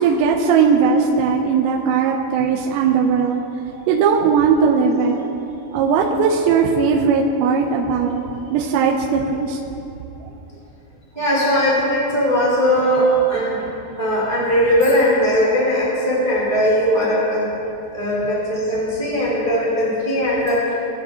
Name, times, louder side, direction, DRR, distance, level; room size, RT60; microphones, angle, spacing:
voice 1, 0.0-3.4 3.9-5.2 5.7-9.6, right 5 dB, 85° right, 0 dB, 2.9 m, -18 dB
voice 2, 11.1-13.6 14.0-17.5 17.9-20.7, equal, 25° right, -6 dB, 1.0 m, -19 dB
21.0 x 10.0 x 2.8 m, 2.8 s
omnidirectional pair, 5.1 m